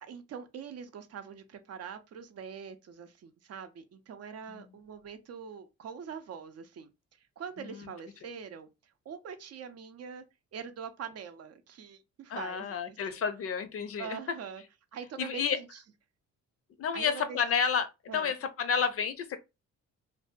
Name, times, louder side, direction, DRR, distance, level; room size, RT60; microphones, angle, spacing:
voice 1, 0.0-6.9 7.2-10.2 10.5-13.2 14.0-14.6 14.9-15.8 16.9-17.4 18.1-18.3, right 7 dB, 55° right, 0.6 m, -43 dB
voice 2, 12.3-14.2 15.2-15.6 16.8-19.4, left 6 dB, 50° left, 0.5 m, -30 dB
2.6 x 2.2 x 2.5 m
cardioid pair, 90°, 30 cm